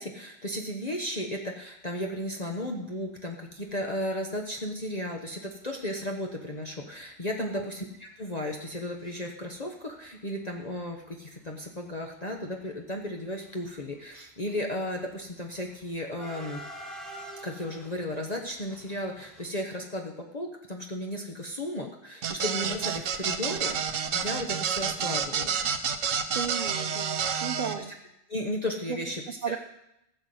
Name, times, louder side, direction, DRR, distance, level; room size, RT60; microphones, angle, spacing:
voice 1, 0.0-7.9 8.2-16.6 17.4-23.7 24.1-25.6 28.3-29.2 29.5-29.6, left 1 dB, 35° left, 1 dB, 1.1 m, -34 dB
sound 1, 3.5-3.7 4.2-4.3 4.5-4.7 5.4-5.5 6.0-6.2 6.4-6.5 6.9-9.1 9.4-10.1 10.4-19.5, right 1 dB, ahead, 2.5 m, -48 dB
sound 2, 22.2-27.7, right 7 dB, 70° right, 1.2 m, -29 dB
voice 2, 26.3-27.9 28.9-29.0 29.4-29.6, right 7 dB, 45° right, 9 dB, 0.8 m, -34 dB
15.0 x 5.6 x 7.7 m, 0.83 s
omnidirectional pair, 1.4 m